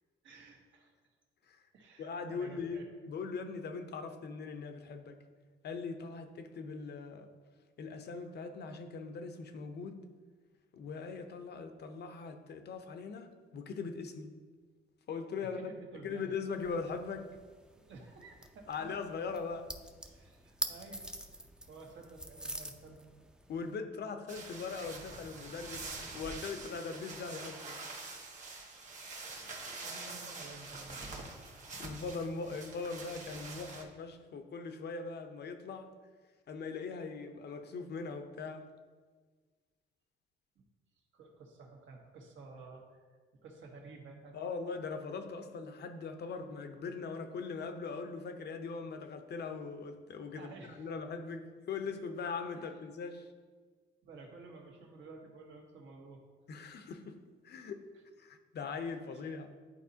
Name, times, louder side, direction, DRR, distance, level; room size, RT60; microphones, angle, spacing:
voice 1, 0.2-0.9 1.7-2.9 15.5-16.3 17.8-18.9 20.1-21.0 21.7-23.0 29.8-31.4 40.5-40.6 40.9-44.4 50.4-50.9 52.6-52.7 54.0-56.2 59.1-59.3, right 3 dB, 70° right, 0 dB, 1.5 m, -52 dB
voice 2, 2.0-5.2 5.6-7.3 7.8-10.0 10.7-14.3 15.1-15.7 16.0-17.3 18.7-19.7 23.5-27.8 31.8-35.9 36.5-38.7 44.3-53.3 56.5-57.2 57.4-57.8 58.2-59.5, left 4 dB, 55° left, 7 dB, 0.7 m, -40 dB
sound 1, 16.5-23.7, right 1 dB, 5° right, 0.5 m, -46 dB
sound 2, 24.3-33.8, right 3 dB, 35° right, 1.4 m, -45 dB
11.0 x 4.2 x 2.8 m, 1.5 s
cardioid pair, 90°, 20 cm